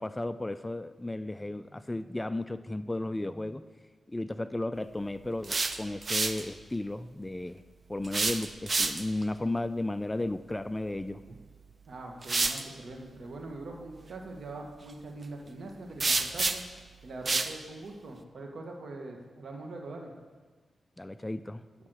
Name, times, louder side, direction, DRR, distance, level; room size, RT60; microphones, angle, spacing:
voice 1, 0.0-3.7 4.1-7.6 7.9-11.2 21.0-21.6, left 2 dB, 15° left, 12 dB, 0.3 m, -34 dB
sound 1, 5.3-6.4 8.0-9.2 11.3-11.4 12.2-12.6 16.0-16.8 17.3-17.5, right 3 dB, 40° right, 0.6 m, -29 dB
voice 2, 11.9-16.6 17.0-20.1, right 2 dB, 70° right, 2 dB, 1.6 m, -42 dB
10.5 x 5.7 x 6.4 m, 1.4 s
cardioid pair, 80°, 0 cm